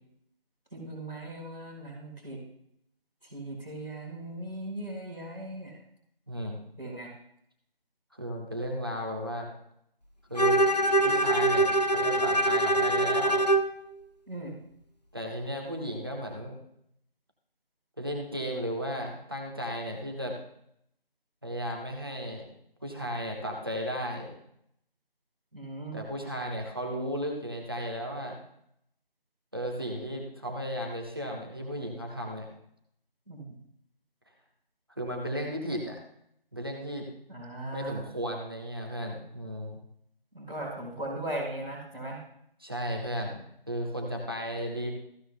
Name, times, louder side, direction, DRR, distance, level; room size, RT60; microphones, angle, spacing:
voice 1, 0.7-2.4 3.2-5.8 6.8-7.1 14.2-14.5 25.5-26.0 33.2-33.4 37.3-38.0 40.3-42.2, right 1 dB, ahead, -19 dB, 1.5 m, -38 dB
voice 2, 6.3-6.6 8.1-9.5 10.3-10.6 11.0-13.4 15.1-16.6 18.0-20.4 21.4-22.5 22.8-24.3 25.9-28.4 29.5-32.5 35.0-36.0 36.5-37.1 37.7-39.8 42.6-44.9, equal, 25° right, 0 dB, 1.2 m, -34 dB
Bowed string instrument, 10.4-13.8, right 1 dB, 45° left, 0.7 m, -24 dB
14.5 x 12.0 x 2.2 m, 0.72 s
figure-of-eight pair, 170°, 29 cm